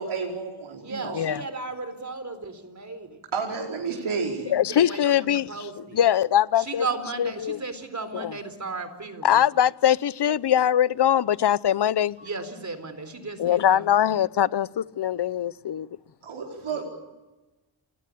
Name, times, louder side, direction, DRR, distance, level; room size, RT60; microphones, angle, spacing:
voice 1, 0.0-1.2 3.3-4.5 12.2-12.3 16.2-16.8, right 5 dB, 85° right, 5.0 m, -31 dB
voice 2, 0.8-3.2 4.4-6.0 6.6-9.4 12.2-13.9 16.6-16.8, right 3 dB, 35° right, 4.1 m, -35 dB
voice 3, 4.5-5.6 5.9-6.9 7.2-7.6 8.1-8.3 9.2-12.2 13.4-15.9, left 10 dB, 55° left, 0.8 m, -22 dB
28.5 x 21.0 x 8.6 m
wide cardioid pair, 100°, 47 cm